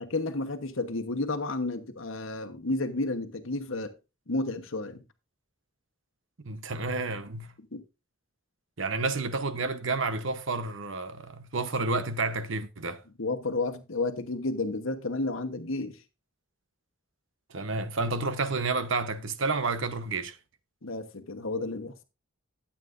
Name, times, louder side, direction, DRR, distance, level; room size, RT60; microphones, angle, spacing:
voice 1, 0.0-3.9 4.3-5.0 7.7-7.8 13.2-16.0 20.8-21.9, left 2 dB, 75° left, 1.1 m, -31 dB
voice 2, 6.4-7.5 8.8-13.0 17.5-20.4, right 3 dB, 65° right, 1.0 m, -30 dB
13.0 x 8.3 x 2.6 m
head